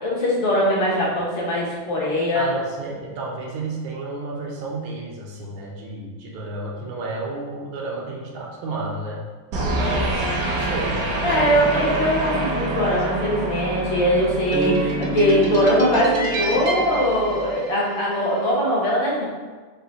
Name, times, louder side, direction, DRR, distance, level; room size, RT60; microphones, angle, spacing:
voice 1, 0.0-2.5 11.2-19.2, equal, 75° left, -6 dB, 2.0 m, -21 dB
voice 2, 2.3-9.2 9.7-11.6, right 3 dB, 80° right, -2 dB, 1.6 m, -31 dB
sound 1, 9.5-18.1, right 2 dB, 60° right, 1.1 m, -25 dB
4.8 x 2.7 x 4.0 m, 1.4 s
omnidirectional pair, 2.3 m